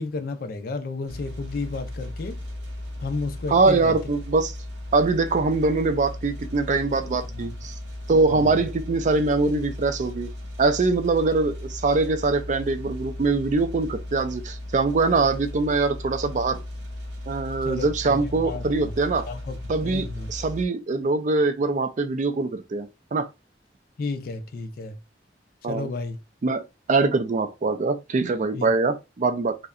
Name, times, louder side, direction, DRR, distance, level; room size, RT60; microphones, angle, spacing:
voice 1, 0.0-2.4 3.0-3.9 7.3-7.5 8.3-8.5 17.6-18.9 19.3-19.5 19.8-20.3 24.0-25.0 25.7-26.2 28.5-28.7, left 3 dB, 55° left, 0.4 m, -32 dB
sound 1, 1.1-20.7, left 1 dB, 75° right, 0.7 m, -36 dB
voice 2, 3.5-4.5 4.9-7.7 8.1-10.3 10.6-16.6 17.3-19.3 19.7-23.3 25.6-25.9 26.4-26.6 26.9-29.6, right 3 dB, 45° right, 0.4 m, -23 dB
2.7 x 2.1 x 2.4 m
head